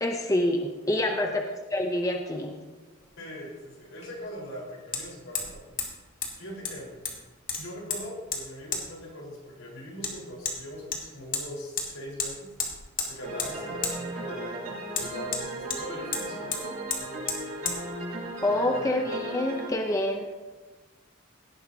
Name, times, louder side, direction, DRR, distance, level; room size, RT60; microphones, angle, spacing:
voice 1, 0.0-1.4 1.7-2.5 18.4-20.3, left 1 dB, 15° left, 3 dB, 0.7 m, -27 dB
Hammer, 3.0-3.1 4.9-5.0 5.3-5.5 5.8-5.9 6.2-6.3 6.6-7.2 7.5-8.0 8.3-8.4 8.7-8.8 10.0-10.1 10.5-10.6 10.9-11.4 11.8-11.9 12.2-12.3 12.6-13.1 13.4-13.5 13.8-14.0 14.9-15.8 16.1-16.2 16.5-16.6 16.9-17.0 17.3-17.4 17.7-17.8, left 5 dB, 45° left, 1.9 m, -31 dB
voice 2, 3.2-5.6 6.4-7.0 7.6-12.5 13.1-16.7 17.0-17.6 18.5-18.9, equal, 75° left, -3 dB, 4.5 m, -41 dB
sound 1, 13.2-19.7, right 1 dB, 75° right, 3.5 m, -36 dB
17.0 x 11.0 x 2.8 m, 1.3 s
head